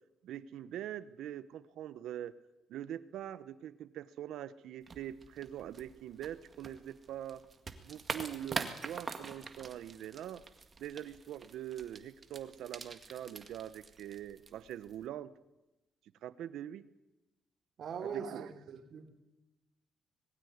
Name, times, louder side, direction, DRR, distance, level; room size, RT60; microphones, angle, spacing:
voice 1, 0.2-2.3 2.7-7.4 7.8-10.4 10.8-15.3 16.2-16.9 18.0-18.5, right 11 dB, 80° right, 16 dB, 0.8 m, -43 dB
sound 1, 4.8-15.1, right 4 dB, 35° right, 1.9 m, -45 dB
voice 2, 17.8-19.1, right 6 dB, 60° right, 6 dB, 3.0 m, -42 dB
20.5 x 15.5 x 9.4 m, 1.0 s
cardioid pair, 90°, 0 cm